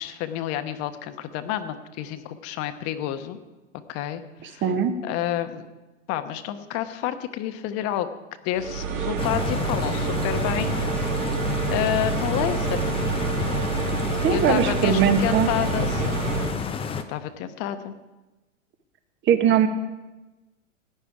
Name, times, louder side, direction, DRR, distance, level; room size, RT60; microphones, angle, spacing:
voice 1, 0.0-3.4 3.9-4.7 5.0-5.7 6.1-8.1 8.4-10.7 11.7-12.9 14.3-16.2 17.1-17.9, left 12 dB, 40° left, 9 dB, 1.2 m, -29 dB
voice 2, 4.6-5.0 14.2-15.5 19.2-19.7, right 7 dB, 30° right, 8 dB, 1.4 m, -20 dB
sound 1, 8.5-16.6, right 6 dB, 75° right, 1.8 m, -28 dB
Stream, 9.2-17.0, left 5 dB, 15° left, 0.8 m, -29 dB
17.5 x 9.8 x 4.9 m, 1.1 s
hypercardioid pair, 120°, 39 cm